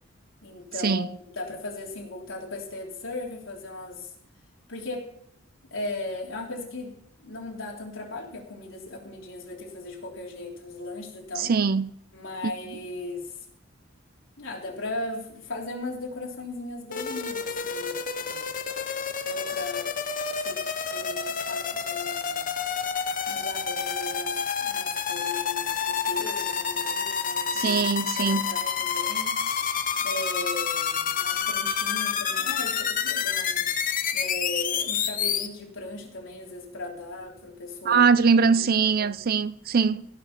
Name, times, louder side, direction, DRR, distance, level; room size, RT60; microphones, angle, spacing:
voice 1, 0.4-4.1 4.7-5.1 5.7-11.5 12.1-13.3 14.4-18.4 19.2-20.0 20.4-20.6 20.9-22.5 23.3-27.8 28.1-29.4 30.0-33.7 34.1-38.1 38.4-39.1, left 2 dB, 85° left, 3.4 m, -37 dB
voice 2, 11.4-11.9 27.5-28.5 37.9-40.1, right 5 dB, 50° right, 0.5 m, -22 dB
sound 1, 16.9-35.5, left 7 dB, 45° left, 0.8 m, -29 dB
16.0 x 6.4 x 5.8 m
head